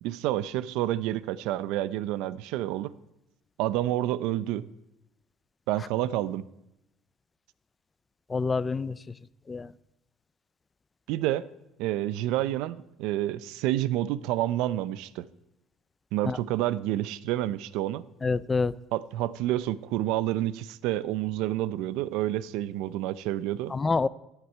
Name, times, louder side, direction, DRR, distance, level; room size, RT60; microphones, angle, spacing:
voice 1, 0.0-2.9 3.6-4.7 5.7-6.4 11.1-11.5 11.8-15.3 16.1-18.0 18.9-23.7, right 14 dB, 80° right, 17 dB, 0.6 m, -29 dB
voice 2, 8.3-9.0 9.5-9.7 16.2-16.4 18.2-18.7 23.7-24.1, left 4 dB, 20° left, 19 dB, 0.4 m, -27 dB
13.5 x 8.2 x 9.2 m, 0.87 s
cardioid pair, 140°, 0 cm